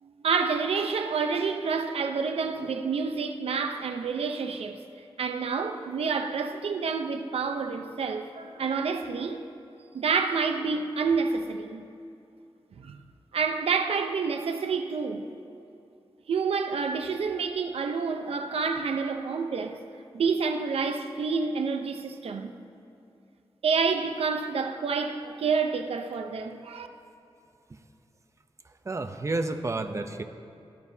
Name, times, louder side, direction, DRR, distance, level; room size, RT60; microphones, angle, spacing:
voice 1, 0.0-4.8 5.2-9.4 9.9-11.9 12.8-13.0 13.3-15.3 16.3-19.8 20.1-22.5 23.6-26.9, right 5 dB, 85° right, 0.7 m, -28 dB
voice 2, 28.8-30.2, right 2 dB, 30° right, 0.7 m, -30 dB
18.5 x 11.5 x 2.8 m
wide cardioid pair, 100°, 10 cm